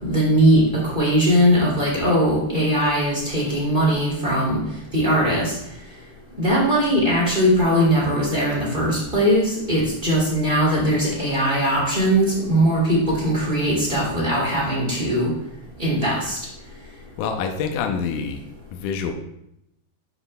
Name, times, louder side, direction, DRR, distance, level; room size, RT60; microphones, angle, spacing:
voice 1, 0.0-4.6 4.9-5.6 6.4-15.3 15.8-16.4, equal, 15° right, -5 dB, 2.1 m, -20 dB
voice 2, 17.2-18.4 18.7-19.1, left 6 dB, 75° left, 4 dB, 2.0 m, -26 dB
9.8 x 7.3 x 2.3 m, 0.79 s
omnidirectional pair, 4.2 m